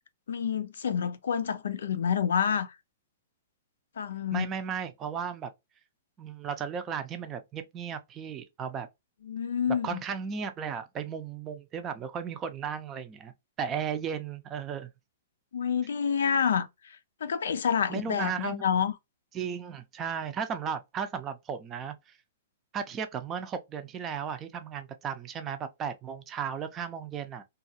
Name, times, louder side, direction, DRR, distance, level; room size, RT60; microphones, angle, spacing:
voice 1, 0.3-2.8 4.0-4.5 9.2-10.0 15.5-18.9, left 7 dB, 80° left, 0.4 m, -28 dB
voice 2, 4.3-5.5 6.2-8.9 9.8-14.9 17.9-18.6 19.3-22.1 22.7-27.4, right 7 dB, 25° right, 0.5 m, -35 dB
2.3 x 2.3 x 2.6 m
hypercardioid pair, 135°, 0 cm